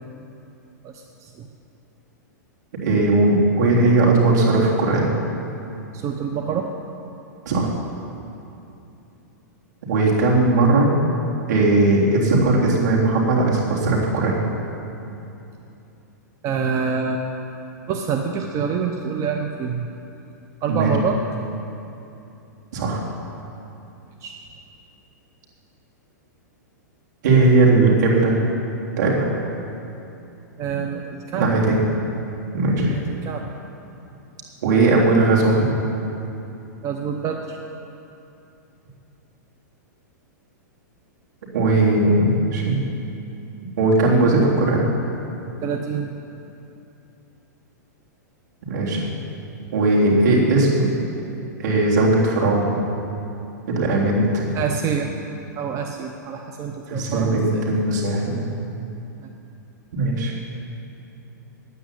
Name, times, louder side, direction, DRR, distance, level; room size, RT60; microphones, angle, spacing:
voice 1, 0.8-1.5 5.9-6.7 16.4-17.2 17.9-19.9 20.6-21.2 24.2-24.4 30.6-31.6 32.9-33.4 36.8-37.6 45.6-46.1 54.5-55.1 55.6-57.6 59.2-59.3, right 6 dB, 30° right, 3 dB, 0.8 m, -26 dB
voice 2, 2.8-5.1 7.5-7.7 9.8-10.9 11.5-14.4 20.7-20.9 22.7-23.0 27.2-28.4 29.0-29.3 30.7-30.8 31.4-31.8 32.5-32.9 34.6-35.7 41.5-42.8 43.8-44.9 48.7-49.0 49.7-50.9 51.6-52.8 53.7-54.5 56.9-58.4 59.9-60.3, right 2 dB, 70° right, -4 dB, 3.5 m, -18 dB
9.3 x 8.9 x 9.9 m, 2.8 s
hypercardioid pair, 120°, 10 cm